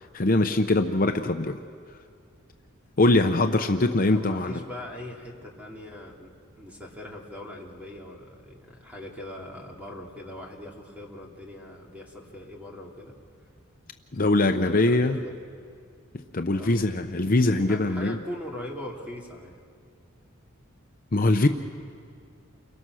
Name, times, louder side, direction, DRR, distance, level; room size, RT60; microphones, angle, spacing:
voice 1, 0.1-1.6 3.0-4.6 14.1-15.2 16.3-18.2 21.1-21.5, left 2 dB, 40° left, 6 dB, 0.7 m, -22 dB
voice 2, 4.1-13.2 14.5-15.3 16.5-16.9 17.7-19.6, left 1 dB, 5° right, -1 dB, 2.9 m, -41 dB
29.5 x 23.0 x 6.3 m, 2.3 s
head